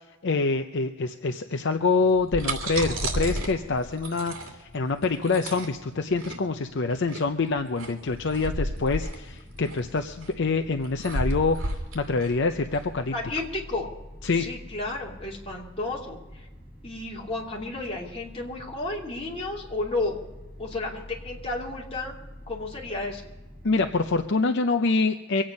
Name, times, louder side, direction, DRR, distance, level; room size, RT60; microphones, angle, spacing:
voice 1, 0.2-13.1 14.2-14.4 23.6-25.4, left 3 dB, 55° left, 7 dB, 0.6 m, -26 dB
sound 1, 2.0-13.4, right 1 dB, 85° right, 2.5 m, -33 dB
sound 2, 8.0-24.3, equal, 5° right, 4.5 m, -46 dB
voice 2, 13.1-13.9 14.3-16.5 16.8-20.2 20.6-22.1 22.5-23.2, left 2 dB, 30° left, -3 dB, 2.8 m, -32 dB
24.0 x 8.8 x 5.3 m, 1.1 s
head